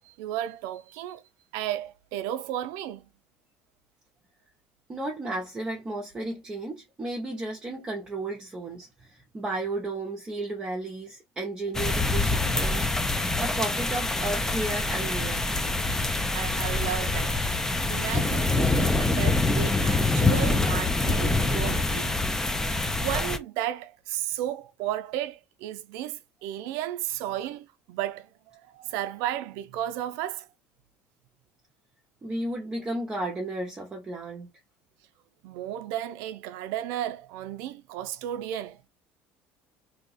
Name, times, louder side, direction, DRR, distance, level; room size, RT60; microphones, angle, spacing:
voice 1, 0.0-1.2 1.5-3.1 16.3-17.4 17.9-22.1 23.0-30.5 35.4-38.8, right 12 dB, 80° right, 0.4 m, -33 dB
voice 2, 4.9-12.8 13.4-15.5 32.2-34.5, right 2 dB, 15° right, 0.7 m, -33 dB
sound 1, 11.7-23.4, left 2 dB, 10° left, 0.4 m, -25 dB
2.8 x 2.2 x 4.0 m
cardioid pair, 140°, 5 cm